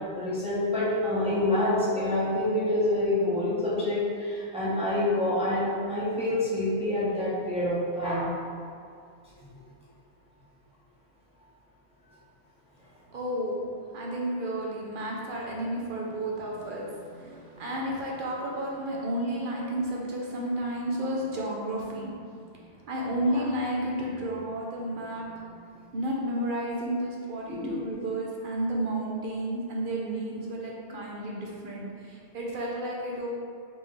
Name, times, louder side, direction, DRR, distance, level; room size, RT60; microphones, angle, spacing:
voice 1, 0.1-8.3 27.5-27.8, left 1 dB, 5° right, -9 dB, 0.8 m, -27 dB
voice 2, 13.1-22.3 22.9-25.7 25.9-33.3, right 1 dB, 60° right, -2 dB, 0.7 m, -32 dB
4.3 x 3.4 x 3.1 m, 2.3 s
omnidirectional pair, 1.1 m